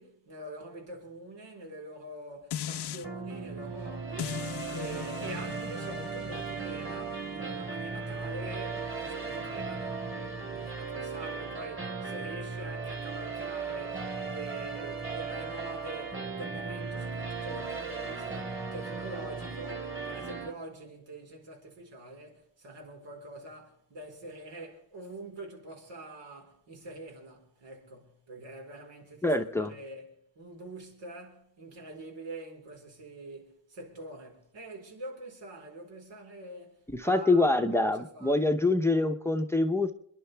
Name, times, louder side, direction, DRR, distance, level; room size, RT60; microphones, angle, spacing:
voice 1, 0.0-30.0 30.4-38.5, right 2 dB, 80° right, 4.4 m, -45 dB
sound 1, 2.5-3.1 4.2-9.3 9.8-9.9, left 10 dB, 65° left, 0.6 m, -40 dB
sound 2, 3.0-20.5, right 4 dB, 30° right, 3.4 m, -37 dB
voice 2, 29.2-29.7 36.9-39.9, left 2 dB, 5° left, 0.7 m, -25 dB
28.0 x 11.0 x 3.4 m
wide cardioid pair, 160°, 43 cm